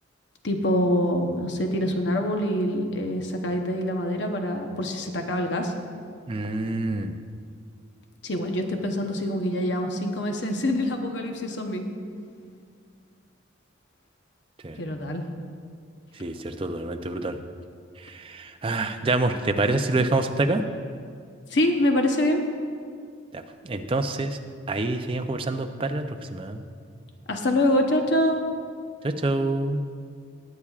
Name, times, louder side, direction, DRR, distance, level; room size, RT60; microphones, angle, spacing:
voice 1, 0.4-5.7 8.2-11.8 14.8-15.2 21.5-22.4 27.3-28.5, left 1 dB, 65° left, 3 dB, 0.9 m, -25 dB
voice 2, 6.3-7.2 14.6-14.8 16.2-17.4 18.0-20.6 23.3-24.4 24.7-26.6 29.0-29.8, right 2 dB, 30° right, 6 dB, 0.5 m, -27 dB
20.5 x 8.6 x 2.4 m, 2.2 s
head